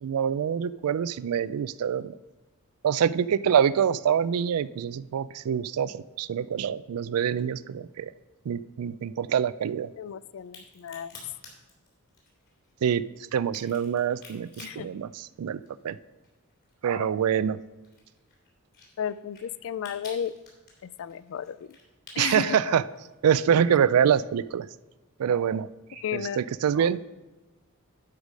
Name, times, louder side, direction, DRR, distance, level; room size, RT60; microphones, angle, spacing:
voice 1, 0.0-2.2 2.8-8.1 8.5-9.9 12.8-13.0 13.3-15.1 15.4-16.0 16.8-17.6 22.2-22.8 23.2-24.7 25.2-27.0, right 8 dB, 75° right, 17 dB, 0.3 m, -25 dB
voice 2, 10.0-11.2 14.6-14.9 16.9-17.1 19.0-20.3 20.8-21.8 22.1-22.8 23.4-23.8 26.0-26.4, left 8 dB, 65° left, 17 dB, 0.4 m, -34 dB
Crack, 10.4-15.9 16.2-23.2, left 3 dB, 45° left, 3.1 m, -49 dB
11.5 x 4.9 x 5.1 m, 1.2 s
head